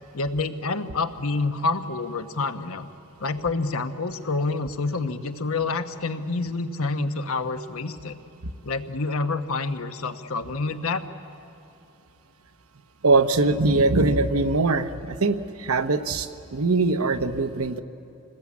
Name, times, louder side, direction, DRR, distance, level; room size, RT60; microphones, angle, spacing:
voice 1, 0.1-2.9 3.2-8.2 8.6-11.0, left 3 dB, 80° left, 8 dB, 1.1 m, -28 dB
voice 2, 13.0-17.8, right 3 dB, 90° right, 8 dB, 1.0 m, -22 dB
26.0 x 19.0 x 8.5 m, 2.7 s
head